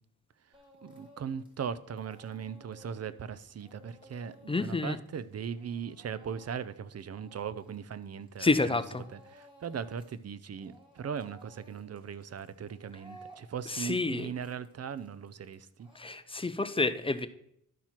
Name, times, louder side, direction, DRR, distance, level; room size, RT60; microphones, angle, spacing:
Speech / Crying sobbing, 0.5-1.6 1.9-8.5 8.8-10.2 10.5-16.7, right 1 dB, 15° right, 2.9 m, -57 dB
voice 1, 0.8-8.8 9.1-15.9, right 7 dB, 50° right, 16 dB, 0.6 m, -39 dB
voice 2, 4.5-5.0 8.4-9.0 13.7-14.3 16.0-17.3, left 3 dB, 15° left, 13 dB, 0.5 m, -29 dB
12.0 x 4.5 x 5.8 m, 0.74 s
cardioid pair, 85°, 33 cm